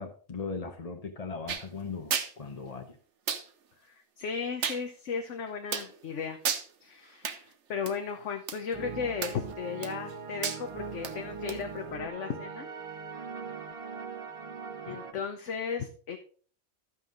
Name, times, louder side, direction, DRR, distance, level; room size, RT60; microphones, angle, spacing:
voice 1, 0.0-3.0 14.9-15.0, left 4 dB, 35° left, 4 dB, 0.9 m, -39 dB
sound 1, 1.5-1.7 2.1-2.3 3.3-3.4 4.6-4.8 5.7-5.9 6.4-6.7 7.2-7.4 7.9-8.0 8.5-8.6 9.2-9.5 9.8-10.1 10.4-10.6 11.0-11.1 11.5-11.6, right 7 dB, 65° right, 1.1 m, -31 dB
voice 2, 3.8-6.4 6.8-12.7 14.9-16.2, left 6 dB, 65° left, 5 dB, 1.2 m, -35 dB
sound 2, 8.7-15.1, right 5 dB, 30° right, 0.7 m, -41 dB
13.5 x 5.5 x 3.9 m, 0.43 s
omnidirectional pair, 1.4 m